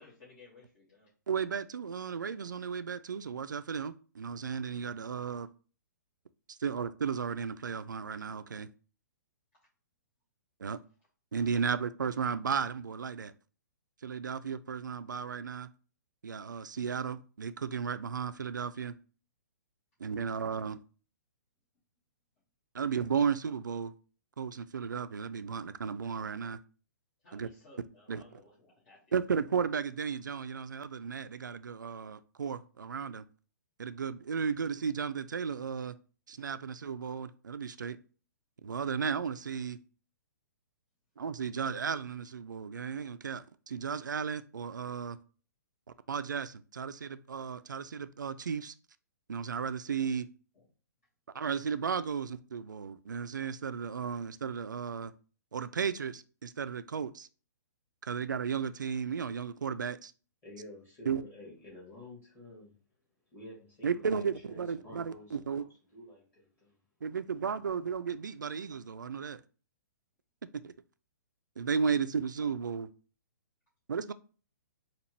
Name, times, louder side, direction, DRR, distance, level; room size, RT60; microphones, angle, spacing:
voice 1, 0.0-1.1 27.2-29.0 50.5-50.7, left 3 dB, 50° left, 1.7 m, -57 dB
voice 2, 1.3-5.5 6.5-8.7 10.6-10.8 11.3-13.3 14.0-15.7 16.2-18.9 20.0-20.8 22.7-23.9 24.4-26.6 27.3-27.5 28.1-28.4 29.1-33.2 33.8-35.9 36.3-38.0 38.6-39.8 41.2-45.2 46.1-48.7 49.3-50.3 51.3-55.1 55.5-57.3 58.0-60.1 61.1-61.2 63.8-65.6 67.0-69.4 70.6-70.7 71.6-72.9 73.9-74.1, right 6 dB, 75° right, 0.4 m, -34 dB
voice 3, 60.4-62.8 63.3-66.8, left 1 dB, 20° left, 1.8 m, -51 dB
4.4 x 2.4 x 3.1 m
figure-of-eight pair, 120°, 10 cm